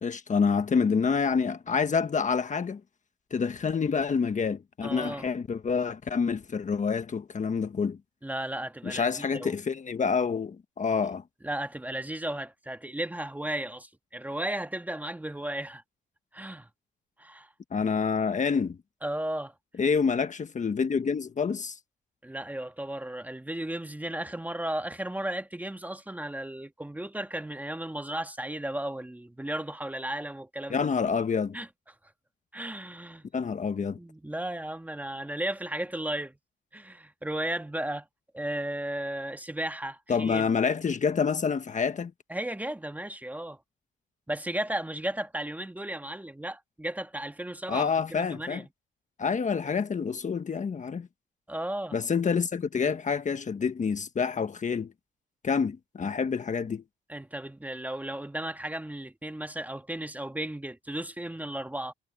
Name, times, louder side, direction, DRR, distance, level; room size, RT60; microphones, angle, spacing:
voice 1, 0.0-2.8 3.3-8.0 8.8-11.2 17.7-18.8 19.8-21.8 30.7-31.6 33.3-34.0 40.1-42.1 47.7-48.6 49.2-51.1 51.9-54.9 55.4-56.8, left 5 dB, 40° left, 1.5 m, -27 dB
voice 2, 4.8-5.3 8.2-9.6 11.4-15.8 16.3-16.7 17.2-17.5 19.0-19.5 22.2-30.9 31.5-31.7 32.5-33.3 33.9-36.4 36.7-38.1 38.3-40.5 42.3-43.6 44.3-48.7 51.5-52.0 57.1-61.9, right 1 dB, 10° right, 1.8 m, -35 dB
cardioid pair, 90°, 20 cm